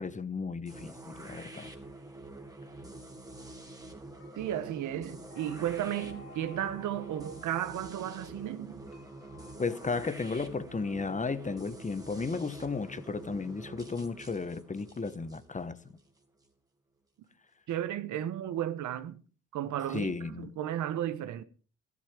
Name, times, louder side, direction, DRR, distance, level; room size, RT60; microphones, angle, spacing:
voice 1, 0.0-1.7 9.6-15.8 19.9-20.5, left 4 dB, 25° left, 1.1 m, -34 dB
sound 1, 0.6-16.5, right 2 dB, 10° right, 2.7 m, -47 dB
sound 2, 4.1-9.6, left 4 dB, 55° left, 3.5 m, -55 dB
voice 2, 4.3-8.8 17.7-19.2 19.5-21.4, right 11 dB, 80° right, 1.2 m, -34 dB
13.5 x 12.5 x 5.0 m
cardioid pair, 90°, 30 cm